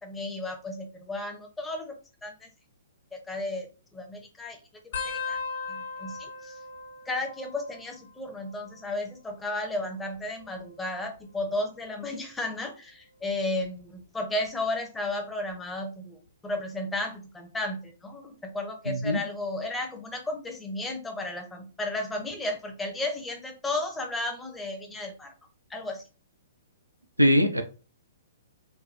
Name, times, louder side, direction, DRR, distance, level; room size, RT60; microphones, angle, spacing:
voice 1, 0.0-2.5 3.1-5.4 5.7-6.6 7.1-25.3 25.7-26.1, left 2 dB, 10° left, 0.6 m, -34 dB
sound 1, 4.9-8.1 8.4-9.0 10.0-11.5 12.1-12.4 13.6-14.0 15.5-15.6, left 5 dB, 55° left, 0.7 m, -39 dB
voice 2, 18.9-19.2 27.2-27.6, equal, 85° right, 0.5 m, -21 dB
3.3 x 2.2 x 2.6 m
figure-of-eight pair, 115°, 0 cm